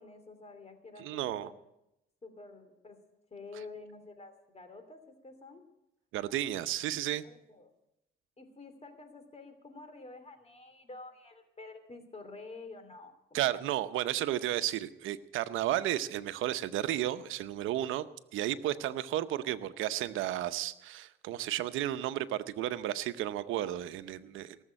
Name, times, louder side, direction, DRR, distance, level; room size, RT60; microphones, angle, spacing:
voice 1, 0.0-1.6 2.2-3.0 3.3-5.6 7.2-7.7 8.4-13.8, left 3 dB, 30° left, 9 dB, 2.9 m, -49 dB
voice 2, 1.0-1.5 6.1-7.2 13.3-18.0 18.3-24.6, right 13 dB, 90° right, 13 dB, 0.8 m, -33 dB
18.5 x 7.3 x 9.9 m, 0.86 s
cardioid pair, 90°, 20 cm